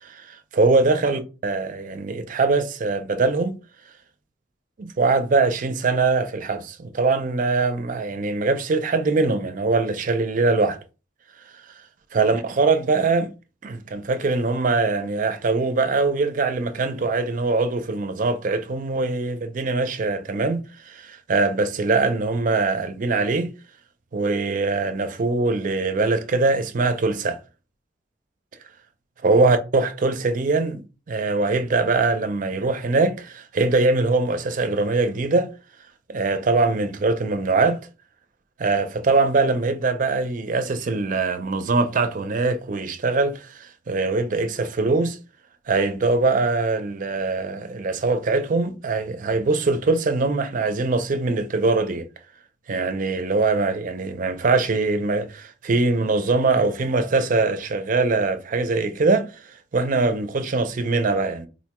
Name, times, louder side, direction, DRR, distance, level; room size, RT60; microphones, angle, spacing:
voice 1, 0.0-3.6 4.8-10.8 12.1-13.3 13.6-23.5 24.1-27.4 29.2-30.8 31.1-35.5 36.1-37.8 38.6-45.2 45.7-52.1 52.7-61.5, right 3 dB, 45° right, 0.4 m, -22 dB
3.9 x 2.2 x 2.9 m
head